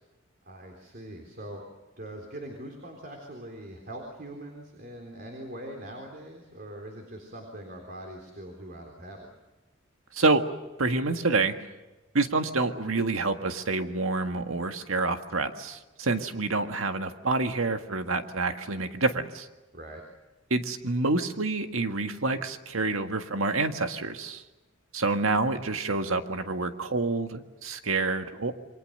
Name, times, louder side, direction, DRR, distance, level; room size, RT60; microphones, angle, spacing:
voice 1, 0.4-1.6 2.0-9.3 19.7-20.0, right 1 dB, 45° right, 2 dB, 3.8 m, -42 dB
voice 2, 10.1-10.5 10.8-11.6 12.1-19.5 20.5-24.4 24.9-28.5, right 3 dB, 85° right, 7 dB, 1.8 m, -27 dB
28.0 x 23.5 x 6.7 m, 1.1 s
head